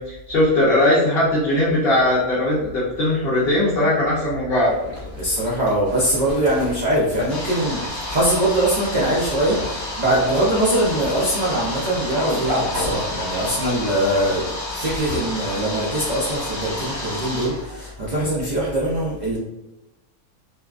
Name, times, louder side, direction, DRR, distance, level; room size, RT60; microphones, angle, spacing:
voice 1, 0.0-4.7, left 1 dB, 60° left, -6 dB, 0.6 m, -19 dB
Zipper (clothing), 4.6-17.1, equal, 40° right, 1.3 m, -34 dB
voice 2, 5.2-19.4, right 1 dB, 80° right, -7 dB, 0.4 m, -22 dB
sound 1, 7.3-17.9, left 1 dB, 35° left, 1.0 m, -31 dB
2.6 x 2.3 x 2.3 m, 0.93 s
omnidirectional pair, 1.6 m